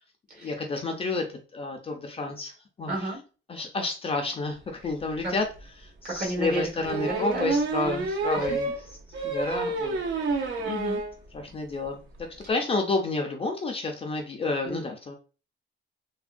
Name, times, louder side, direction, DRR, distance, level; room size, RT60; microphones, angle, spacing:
voice 1, 0.4-1.3 1.5-2.5 2.8-3.1 3.5-5.4 5.8-8.7 9.2-10.0 11.5-15.2, left 3 dB, 30° left, 3 dB, 0.4 m, -30 dB
voice 2, 2.9-3.2 5.2-5.3 6.0-7.5 7.8-8.1 8.3-8.6 10.6-11.0 14.6-14.8, right 1 dB, 50° right, -2 dB, 1.5 m, -32 dB
sound 1, 5.1-5.2 5.5-5.6 6.8-11.1 11.5-11.6 11.9-12.0 12.2-12.4, right 3 dB, 70° right, 0.6 m, -29 dB
3.3 x 2.2 x 2.4 m, 0.34 s
wide cardioid pair, 165°, 20 cm